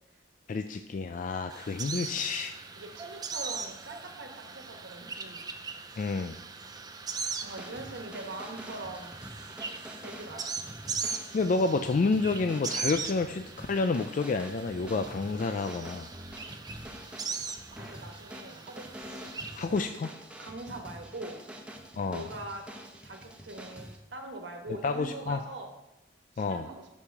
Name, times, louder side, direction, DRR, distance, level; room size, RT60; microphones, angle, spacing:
voice 1, 0.5-2.5 6.0-6.4 11.3-16.1 19.5-20.1 22.0-22.2 24.8-25.4 26.4-26.7, left 3 dB, 45° left, 8 dB, 0.4 m, -29 dB
sound 1, 1.5-19.7, right 5 dB, 20° right, 0.5 m, -40 dB
voice 2, 2.7-5.5 7.4-9.2 10.0-10.6 17.7-18.9 19.5-19.8 20.4-21.4 22.1-22.7 23.0-25.7 26.3-26.9, right 2 dB, 85° right, 4 dB, 1.3 m, -42 dB
sound 2, 7.4-24.0, equal, 5° right, 0.9 m, -46 dB
6.4 x 5.8 x 6.6 m, 0.92 s
head